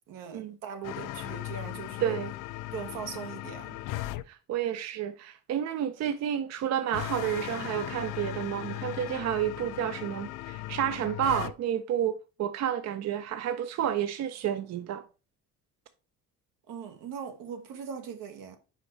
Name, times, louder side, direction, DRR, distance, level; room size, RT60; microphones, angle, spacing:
voice 1, 0.1-2.2 2.7-3.8 16.7-18.6, right 7 dB, 85° right, 1.3 m, -40 dB
sound 1, 0.8-4.2 6.9-11.5, left 16 dB, 80° left, 0.5 m, -37 dB
voice 2, 2.0-2.3 4.3-15.0, right 10 dB, 55° right, 0.5 m, -30 dB
5.1 x 5.1 x 4.0 m
cardioid pair, 120°, 32 cm